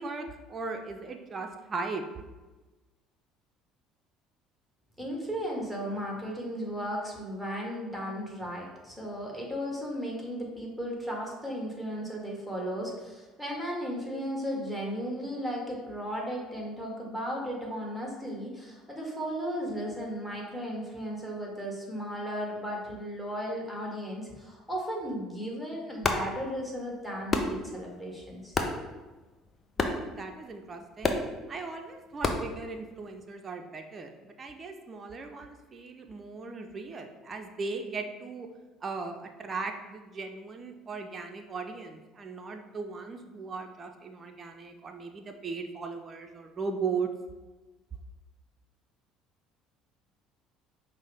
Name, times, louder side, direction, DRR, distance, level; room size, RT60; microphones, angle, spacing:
voice 1, 0.0-2.0 29.8-31.2 31.5-38.5 38.8-47.1, right 4 dB, 35° right, 4 dB, 0.4 m, -38 dB
voice 2, 5.0-28.6, equal, 5° left, -2 dB, 1.4 m, -35 dB
sound 1, 25.9-33.3, left 3 dB, 35° left, 0.5 m, -34 dB
5.2 x 2.0 x 3.4 m, 1.2 s
hypercardioid pair, 65°, 0 cm